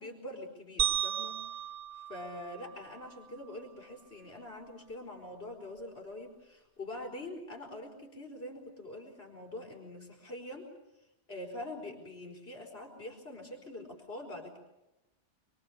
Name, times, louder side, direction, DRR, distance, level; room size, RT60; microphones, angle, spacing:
voice 1, 0.0-1.4 1.9-10.7 11.3-14.6, left 1 dB, 60° left, 2 dB, 5.0 m, -44 dB
sound 1, 0.8-3.2, right 10 dB, 75° right, 1.5 m, -35 dB
28.5 x 23.5 x 7.1 m, 0.96 s
omnidirectional pair, 1.2 m